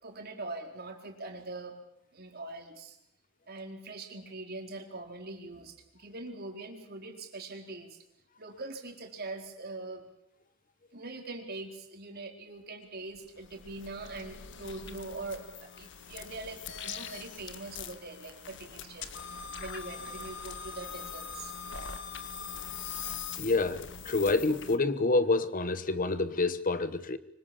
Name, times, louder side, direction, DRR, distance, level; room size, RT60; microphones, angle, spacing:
voice 1, 0.0-1.8 2.1-3.0 3.5-8.0 8.4-10.0 10.9-19.1 19.6-21.5, right 2 dB, 50° right, 3 dB, 4.3 m, -42 dB
sound 1, 13.1-24.8, left 6 dB, 60° left, 1.7 m, -42 dB
voice 2, 23.4-27.2, left 3 dB, 40° left, 13 dB, 1.1 m, -28 dB
25.0 x 25.0 x 7.2 m, 0.77 s
head